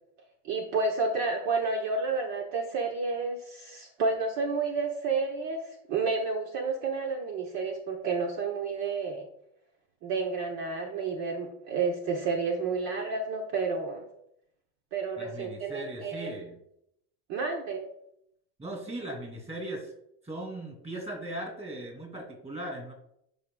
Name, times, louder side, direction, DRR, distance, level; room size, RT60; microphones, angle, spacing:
voice 1, 0.4-9.3 10.0-14.0 14.9-16.3 17.3-17.8, right 4 dB, 50° right, 2 dB, 1.0 m, -30 dB
voice 2, 15.2-16.6 18.6-19.9 20.2-22.9, right 1 dB, 20° right, 2 dB, 2.6 m, -38 dB
12.5 x 5.0 x 2.3 m, 0.76 s
supercardioid pair, 130°, 35 cm